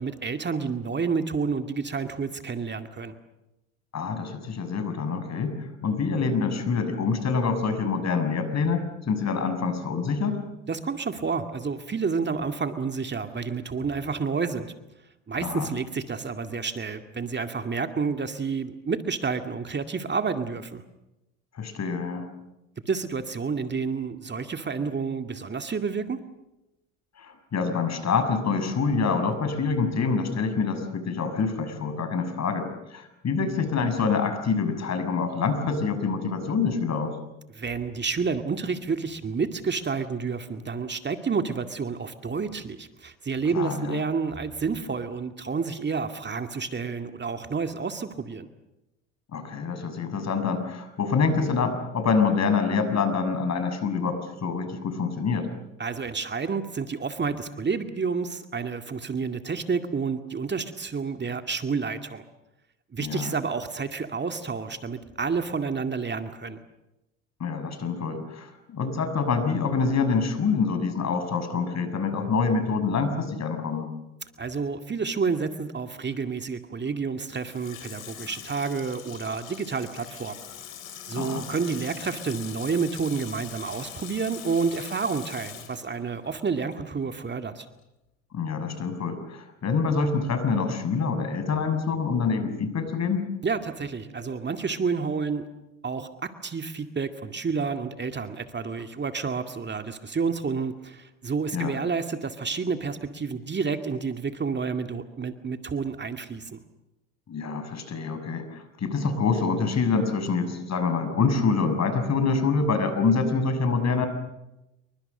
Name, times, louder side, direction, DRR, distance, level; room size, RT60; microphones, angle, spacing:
voice 1, 0.0-3.1 10.7-14.7 15.3-20.8 22.9-26.2 37.5-48.5 55.8-62.2 62.9-66.6 74.4-80.4 81.1-87.7 93.4-95.5 95.8-106.6, right 5 dB, 25° right, 7 dB, 2.2 m, -29 dB
voice 2, 3.9-10.4 15.4-15.7 21.5-22.3 27.2-37.2 43.5-44.0 49.3-55.5 63.0-63.3 67.4-73.9 81.1-81.4 88.3-93.2 101.5-101.7 107.3-114.1, left 5 dB, 45° left, 9 dB, 6.7 m, -26 dB
Water tap faucet / Sink (filling or washing), 77.2-86.9 87.2-87.3, left 9 dB, 90° left, 3.6 m, -43 dB
28.0 x 24.0 x 6.7 m, 0.93 s
hypercardioid pair, 70°, 39 cm